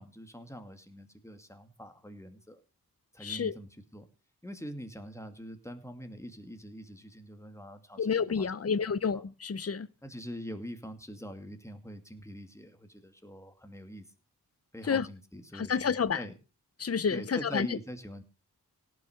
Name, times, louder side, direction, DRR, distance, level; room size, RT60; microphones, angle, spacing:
voice 1, 0.0-2.6 3.1-4.1 4.4-8.5 8.8-9.2 10.0-14.1 14.7-16.3 17.1-18.2, equal, 10° left, 2.4 m, -44 dB
voice 2, 3.2-3.5 8.0-9.9 14.9-15.1 15.6-16.2 16.8-17.7, left 6 dB, 40° left, 0.8 m, -29 dB
17.5 x 6.6 x 6.6 m
wide cardioid pair, 80°, 37 cm